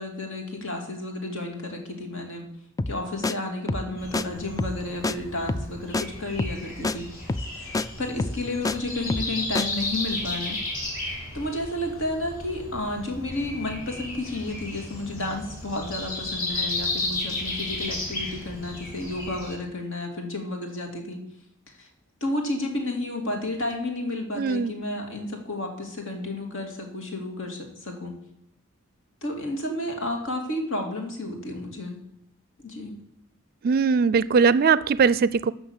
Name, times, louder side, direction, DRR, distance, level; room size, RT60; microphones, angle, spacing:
voice 1, 0.0-2.5 2.9-7.1 7.5-10.6 11.0-21.2 21.7-21.9 22.2-28.1 29.2-32.0 32.6-33.0, left 2 dB, 65° left, 2 dB, 2.6 m, -32 dB
sound 1, 2.8-3.0 3.2-3.3 3.7-4.2 4.6-4.8 5.0-5.1 5.5-5.7 5.9-6.1 6.4-6.6 6.8-7.0 7.3-7.5 7.7-7.9 8.2-8.8 9.1-9.3 9.6-9.7, left 2 dB, 15° left, 0.3 m, -27 dB
Breathing, 4.0-19.5, left 2 dB, 45° left, 5.0 m, -34 dB
voice 2, 24.4-24.7 33.6-35.5, right 5 dB, 45° right, 17 dB, 0.4 m, -20 dB
12.5 x 6.4 x 8.2 m, 0.78 s
head